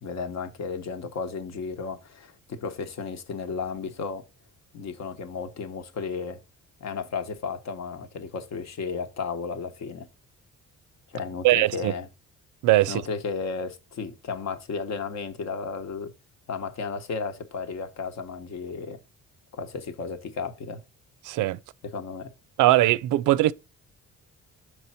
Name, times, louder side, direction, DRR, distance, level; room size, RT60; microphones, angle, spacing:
voice 1, 0.0-4.2 4.7-6.4 6.8-10.1 11.1-12.1 12.9-16.1 16.5-19.0 19.5-20.8 21.9-22.3, left 5 dB, 60° left, 1.1 m, -33 dB
voice 2, 11.4-11.9 12.6-13.0 21.2-21.6 22.6-23.5, right 16 dB, 85° right, 0.5 m, -20 dB
5.4 x 4.6 x 4.2 m
cardioid pair, 90°, 30 cm